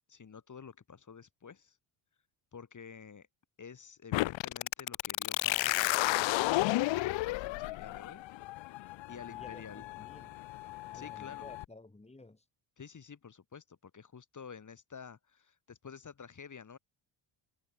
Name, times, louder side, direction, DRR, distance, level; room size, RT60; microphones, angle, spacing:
voice 1, 0.1-1.8 2.5-3.3 3.6-8.2 8.7-9.9 10.9-11.5 12.8-16.8, left 6 dB, 35° left, 6.9 m, -50 dB
sound 1, 4.1-11.6, left 18 dB, 65° left, 0.6 m, -33 dB
voice 2, 9.3-10.4 10.7-12.4, left 2 dB, 15° left, 7.8 m, -54 dB
cardioid pair, 110°, 48 cm